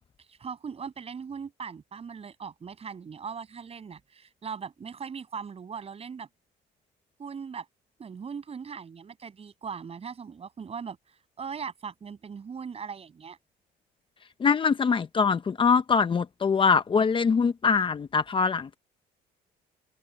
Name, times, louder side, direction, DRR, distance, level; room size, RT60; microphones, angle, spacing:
voice 1, 0.3-6.3 7.2-7.7 8.0-13.4, right 6 dB, 35° right, 7.4 m, -39 dB
voice 2, 14.4-18.8, left 5 dB, 30° left, 0.9 m, -23 dB
cardioid pair, 110°, 17 cm